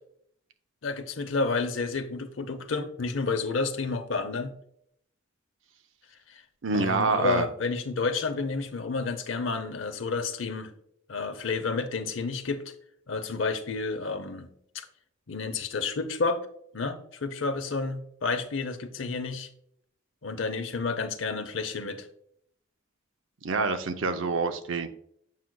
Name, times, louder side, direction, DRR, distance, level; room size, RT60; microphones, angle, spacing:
voice 1, 0.8-4.5 6.3-6.4 6.7-10.7 11.1-12.6 13.1-14.5 14.7-14.9 15.3-16.4 16.7-19.5 20.2-22.1, left 4 dB, 80° left, 8 dB, 0.7 m, -30 dB
voice 2, 6.6-7.5 23.4-24.9, right 4 dB, 85° right, 9 dB, 0.6 m, -26 dB
7.4 x 6.1 x 2.2 m, 0.69 s
head